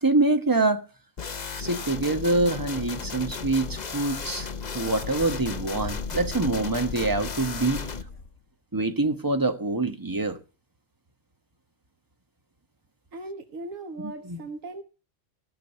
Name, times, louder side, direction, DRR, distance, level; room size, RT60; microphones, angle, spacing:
voice 1, 0.0-0.8 1.6-4.5 4.7-7.8 8.7-10.4 14.3-14.4, right 2 dB, 15° right, 1.2 m, -25 dB
sound 1, 1.2-8.0, left 5 dB, 40° left, 0.9 m, -35 dB
sound 2, 2.5-8.4, left 3 dB, 90° left, 2.2 m, -42 dB
voice 2, 13.1-14.8, right 2 dB, 90° right, 1.7 m, -38 dB
17.5 x 6.4 x 6.6 m
omnidirectional pair, 1.3 m